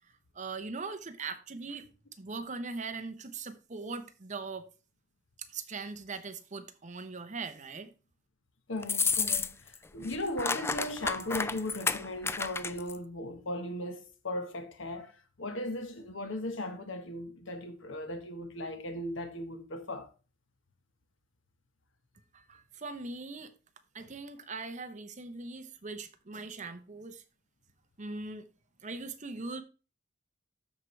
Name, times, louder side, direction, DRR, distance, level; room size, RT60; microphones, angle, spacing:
voice 1, 0.3-1.8 2.2-4.7 5.5-7.9 22.3-23.5 23.9-27.2 28.0-28.4 28.8-29.6, right 3 dB, 40° right, 0.9 m, -40 dB
voice 2, 8.7-20.1, left 1 dB, 80° left, 1.3 m, -37 dB
sound 1, 8.8-9.8 10.0-13.0, left 4 dB, 15° left, 0.3 m, -31 dB
12.5 x 4.7 x 3.2 m
head